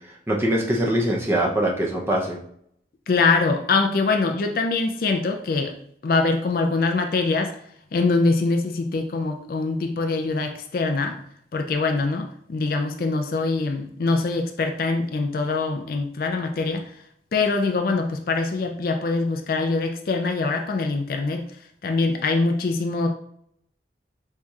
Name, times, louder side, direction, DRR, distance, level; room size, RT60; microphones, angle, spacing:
voice 1, 0.1-2.4, right 1 dB, 15° right, -2 dB, 0.5 m, -23 dB
voice 2, 3.1-5.8 6.0-7.5 7.9-11.2 11.5-16.8 17.3-21.4 21.8-23.1, left 3 dB, 50° left, 5 dB, 0.4 m, -23 dB
4.4 x 2.7 x 2.3 m, 0.68 s
head